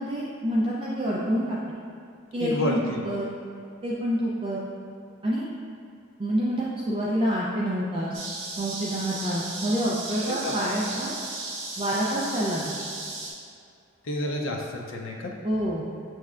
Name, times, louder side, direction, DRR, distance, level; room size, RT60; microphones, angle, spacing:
voice 1, 0.0-1.6 2.3-2.8 3.0-3.3 3.8-4.6 5.2-5.5 6.2-8.1 8.6-11.1 11.8-12.8 15.4-15.8, equal, 25° right, -6 dB, 0.4 m, -27 dB
voice 2, 2.4-3.0 10.3-10.5 14.1-15.3, left 1 dB, 60° left, -1 dB, 0.6 m, -30 dB
sound 1, 8.1-13.3, right 2 dB, 55° right, 0.8 m, -35 dB
7.0 x 3.1 x 2.4 m, 2.4 s
head